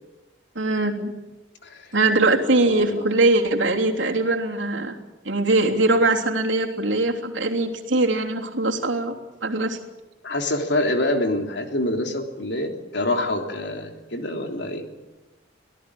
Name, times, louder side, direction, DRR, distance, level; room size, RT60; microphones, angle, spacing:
voice 1, 0.5-1.1 1.9-5.0 5.2-9.2 9.4-9.8, right 2 dB, 75° right, 2 dB, 3.2 m, -21 dB
voice 2, 2.6-3.0 10.2-14.9, left 1 dB, 60° left, 4 dB, 3.3 m, -26 dB
25.5 x 17.0 x 10.0 m, 1.1 s
head